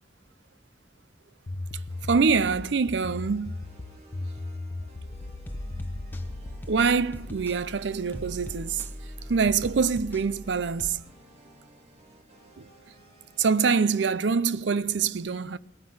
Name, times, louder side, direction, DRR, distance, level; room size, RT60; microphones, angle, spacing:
sound 1, 1.5-6.7, left 2 dB, 45° left, 0.7 m, -37 dB
sound 2, 1.9-14.1, right 1 dB, 35° right, 2.3 m, -55 dB
voice 1, 2.1-3.5 6.7-8.8 9.3-11.0 12.6-12.7 13.4-15.6, right 5 dB, 80° right, 0.5 m, -25 dB
sound 3, 5.0-10.9, equal, 10° left, 0.8 m, -40 dB
18.5 x 9.5 x 7.8 m
head